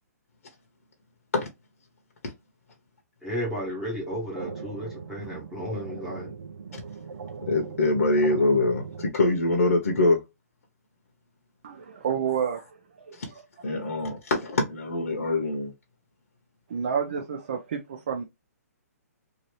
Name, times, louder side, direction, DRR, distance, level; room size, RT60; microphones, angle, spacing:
voice 1, 3.2-6.3, equal, 5° right, 1.1 m, -33 dB
sound 1, 3.9-9.1, right 5 dB, 90° right, 0.6 m, -40 dB
voice 2, 7.5-10.2 13.2-13.3 13.6-15.7, left 2 dB, 60° left, 0.9 m, -24 dB
voice 3, 11.6-12.6 13.1-13.8 16.7-18.2, right 7 dB, 35° right, 0.5 m, -30 dB
2.8 x 2.7 x 3.1 m
hypercardioid pair, 175°, 9 cm